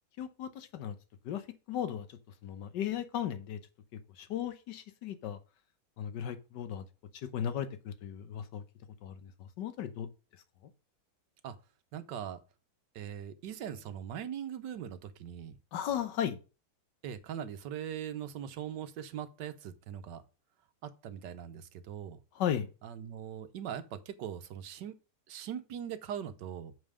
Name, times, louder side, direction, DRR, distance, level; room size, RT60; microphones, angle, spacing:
voice 1, 0.2-1.0 1.2-3.6 3.9-5.4 6.0-6.8 7.1-8.6 9.0-10.1 15.7-16.4 22.3-22.7, left 9 dB, 75° left, 1.5 m, -36 dB
voice 2, 11.9-12.4 12.9-15.6 17.0-20.2 20.8-22.2 22.8-24.9 25.3-26.7, right 9 dB, 80° right, 1.4 m, -41 dB
6.7 x 5.4 x 4.9 m
omnidirectional pair, 1.9 m